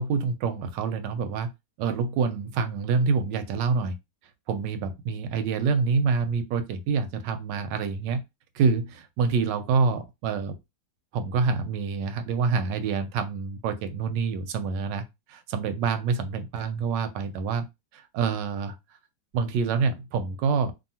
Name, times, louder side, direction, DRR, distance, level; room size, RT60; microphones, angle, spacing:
voice 1, 0.0-1.5 1.8-3.9 4.5-8.2 8.5-10.6 11.1-17.6 17.9-18.8 19.3-20.7, right 5 dB, 85° right, 1.2 m, -26 dB
2.7 x 2.6 x 2.7 m
omnidirectional pair, 1.9 m